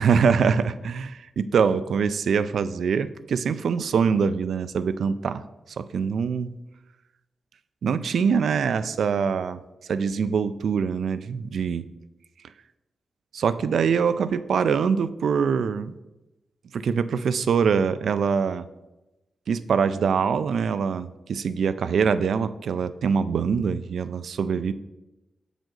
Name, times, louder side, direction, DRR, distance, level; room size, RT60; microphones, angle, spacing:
voice 1, 0.0-5.4 5.8-6.5 7.8-9.6 9.9-11.9 13.3-16.0 16.7-18.7 19.5-24.7, right 6 dB, 75° right, 13 dB, 0.3 m, -24 dB
7.4 x 5.1 x 3.8 m, 1.0 s
wide cardioid pair, 175°, 0 cm